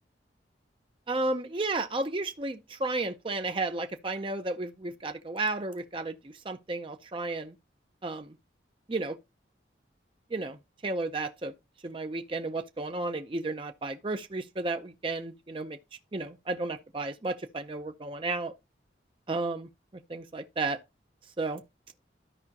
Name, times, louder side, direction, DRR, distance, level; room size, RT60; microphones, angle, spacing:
voice 1, 1.1-6.2 6.4-7.5 8.0-8.3 8.9-9.2 10.3-10.6 10.8-11.5 11.8-15.8 16.1-18.5 19.3-19.7 20.1-20.8 21.4-21.6, right 2 dB, 30° right, 0.6 m, -33 dB
13.0 x 4.9 x 2.8 m
head